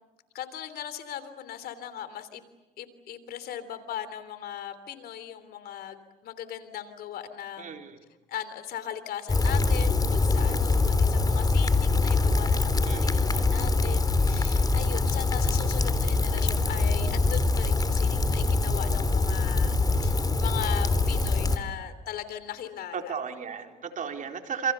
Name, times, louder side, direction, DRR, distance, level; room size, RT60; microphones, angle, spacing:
voice 1, 0.3-2.4 2.8-7.8 8.3-23.2, left 10 dB, 75° left, 12 dB, 3.3 m, -39 dB
voice 2, 7.6-8.0 12.8-13.3 22.9-24.7, right 7 dB, 55° right, 4 dB, 4.3 m, -34 dB
Rain, 9.3-21.6, left 3 dB, 25° left, 3.4 m, -24 dB
28.5 x 28.5 x 7.0 m, 1.1 s
supercardioid pair, 75°, 16 cm